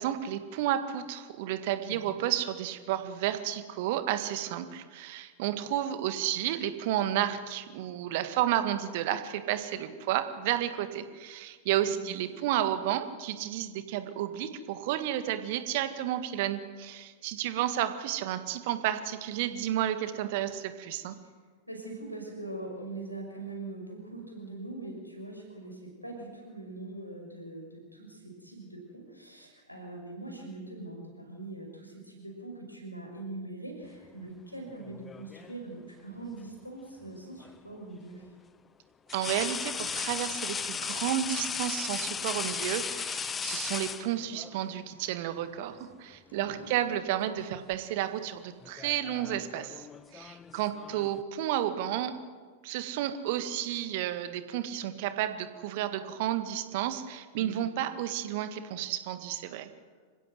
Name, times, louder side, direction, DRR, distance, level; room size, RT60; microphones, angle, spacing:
voice 1, 0.0-21.2 39.1-49.9 50.1-52.2 52.6-59.7, right 12 dB, 50° right, 10 dB, 1.8 m, -31 dB
voice 2, 1.8-2.1 11.8-12.4 21.2-21.3 21.7-38.3 46.3-46.7 57.4-57.7, right 2 dB, 90° left, 1 dB, 6.0 m, -42 dB
sound 1, 34.8-35.6 37.4-37.6 39.1-44.6 45.7-46.0 46.3-47.1 47.4-47.7 48.6-51.2, left 6 dB, 20° left, 0.7 m, -36 dB
26.5 x 16.0 x 8.0 m, 1.5 s
figure-of-eight pair, 90°, 0 cm